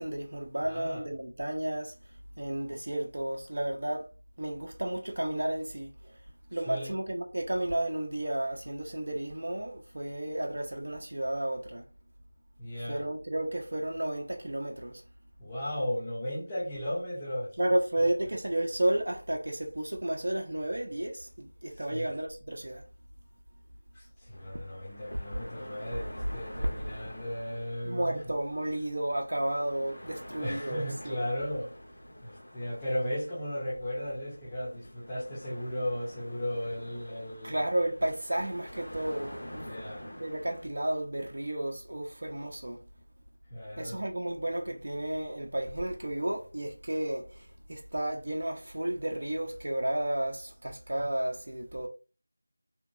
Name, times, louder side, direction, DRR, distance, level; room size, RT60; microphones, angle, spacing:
voice 1, 0.0-1.9 2.4-4.1 4.4-6.1 6.5-11.8 12.9-15.0 17.6-22.8 26.7-26.9 27.1-27.2 27.8-31.2 37.4-39.7 40.1-42.8 43.8-51.9, right 1 dB, 60° right, 0.5 m, -32 dB
voice 2, 0.6-1.1 6.6-6.9 12.6-13.1 15.4-17.5 21.9-22.1 23.9-28.2 29.5-29.6 30.1-31.7 32.2-37.6 39.6-40.1 43.5-44.0, left 1 dB, 10° left, 0.6 m, -36 dB
sound 1, 24.3-40.7, equal, 60° left, 1.1 m, -47 dB
2.8 x 2.3 x 2.6 m
figure-of-eight pair, 170°, 0 cm